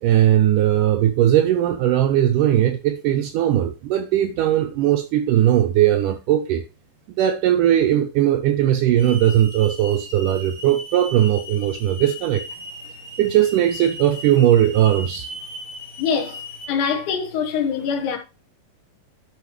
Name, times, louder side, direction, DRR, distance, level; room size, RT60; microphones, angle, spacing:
voice 1, 0.0-6.6 7.1-12.4 13.2-15.3, right 11 dB, 80° right, 1.9 m, -18 dB
Hiss / Alarm, 9.0-16.7, left 1 dB, 35° right, 0.5 m, -37 dB
voice 2, 16.0-16.4 16.7-18.2, left 6 dB, 60° left, 2.7 m, -23 dB
10.5 x 5.6 x 3.1 m
omnidirectional pair, 4.3 m